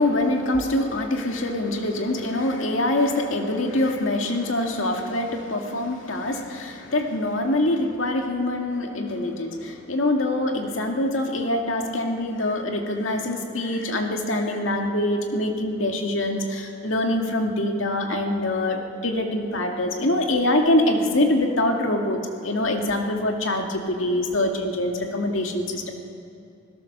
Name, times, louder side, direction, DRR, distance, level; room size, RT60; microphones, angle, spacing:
voice 1, 0.0-25.9, left 1 dB, 90° left, 2 dB, 2.2 m, -24 dB
27.0 x 16.5 x 6.7 m, 2.6 s
head